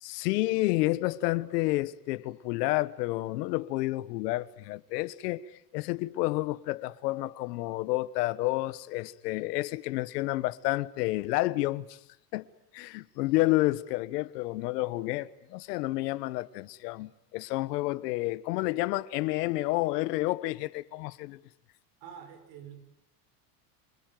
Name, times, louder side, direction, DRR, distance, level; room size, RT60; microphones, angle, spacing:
voice 1, 0.0-12.0 12.3-12.5 12.7-21.4, left 19 dB, 75° left, 1.3 m, -30 dB
voice 2, 22.0-22.8, right 8 dB, 50° right, 6.5 m, -46 dB
27.5 x 22.0 x 9.2 m
cardioid pair, 170°, 48 cm